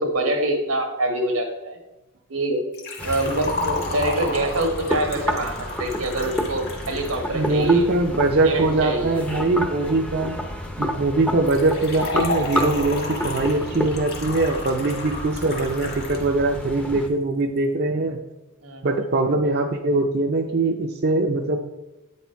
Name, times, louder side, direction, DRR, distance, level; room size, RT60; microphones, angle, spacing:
voice 1, 0.0-1.8 2.3-2.6 3.0-7.8 8.4-9.2 18.6-18.9, right 1 dB, 85° right, 3 dB, 1.4 m, -25 dB
Liquid, 2.7-7.7 11.5-16.3 16.6-16.7 17.6-17.7, left 2 dB, 50° left, 1.5 m, -32 dB
sound 1, 3.0-17.1, left 1 dB, 5° left, 0.6 m, -31 dB
voice 2, 7.3-10.4 10.8-18.2 18.8-21.6, right 2 dB, 45° right, 2 dB, 0.5 m, -22 dB
9.0 x 4.3 x 4.5 m, 1.0 s
head